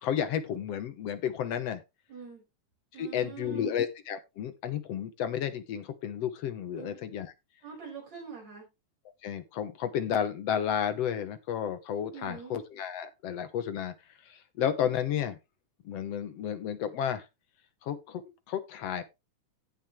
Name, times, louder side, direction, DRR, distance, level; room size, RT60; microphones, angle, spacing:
voice 1, 0.0-1.8 2.9-7.3 9.2-13.9 14.2-15.4 15.9-17.3 17.8-18.2 18.5-19.0, left 9 dB, 65° left, 1.8 m, -32 dB
voice 2, 2.1-2.4 2.9-3.8 6.8-7.0 7.6-8.7 12.1-12.6, right 6 dB, 60° right, 6.9 m, -44 dB
16.5 x 5.5 x 3.1 m
omnidirectional pair, 3.6 m